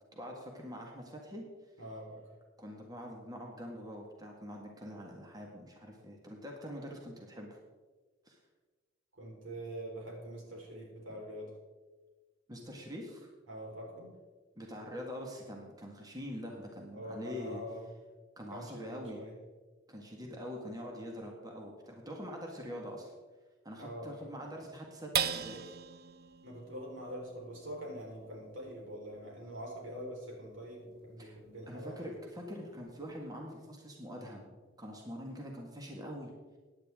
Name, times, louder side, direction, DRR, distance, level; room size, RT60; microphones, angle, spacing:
voice 1, 0.1-1.4 2.6-7.6 8.2-8.4 12.5-13.3 14.5-17.6 18.4-19.2 19.9-23.1 23.6-25.8 31.2-31.3 31.7-36.3, equal, 20° right, 0 dB, 1.7 m, -44 dB
voice 2, 1.8-2.2 9.1-11.6 13.5-14.1 16.9-17.9 18.5-19.4 23.8-24.1 26.4-32.1, equal, 85° right, -2 dB, 4.3 m, -44 dB
sound 1, 25.1-31.8 32.3-32.4 32.8-33.3, right 8 dB, 55° right, 0.6 m, -41 dB
16.5 x 10.0 x 3.7 m, 1.3 s
head